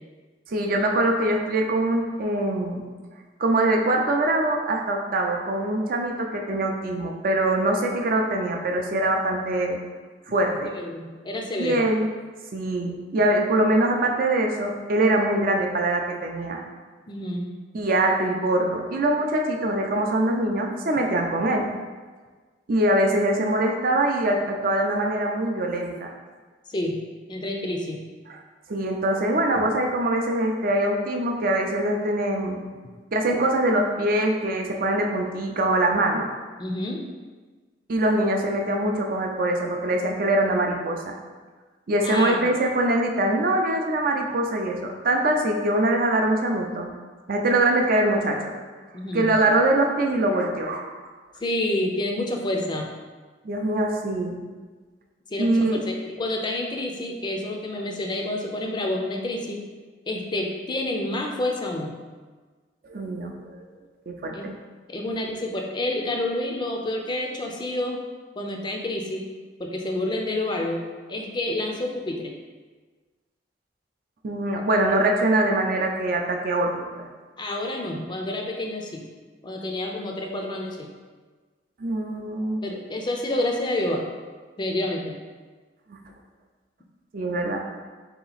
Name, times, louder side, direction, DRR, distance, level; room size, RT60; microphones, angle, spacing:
voice 1, 0.5-2.8 3.4-9.8 10.3-10.7 11.6-12.1 12.5-16.6 17.7-21.7 22.7-26.1 28.3-28.4 28.7-32.6 33.1-36.3 37.9-41.2 41.9-46.9 47.3-48.6 49.1-50.9 53.4-54.4 55.4-55.8 62.8-63.7 64.1-64.5 74.2-76.7 76.9-77.1 81.8-82.6 85.9-86.0 87.1-87.6, right 1 dB, 50° right, 2 dB, 0.5 m, -23 dB
voice 2, 10.7-11.9 17.1-17.5 26.7-27.0 27.3-28.0 36.6-37.0 42.0-42.5 48.9-49.3 51.4-52.9 55.3-59.6 60.1-62.0 64.3-64.5 64.9-68.0 68.4-69.3 69.6-70.8 71.1-72.3 77.4-79.0 79.4-80.9 82.6-84.1 84.6-85.2, left 1 dB, 25° left, 1 dB, 0.4 m, -28 dB
4.0 x 2.9 x 4.0 m, 1.4 s
head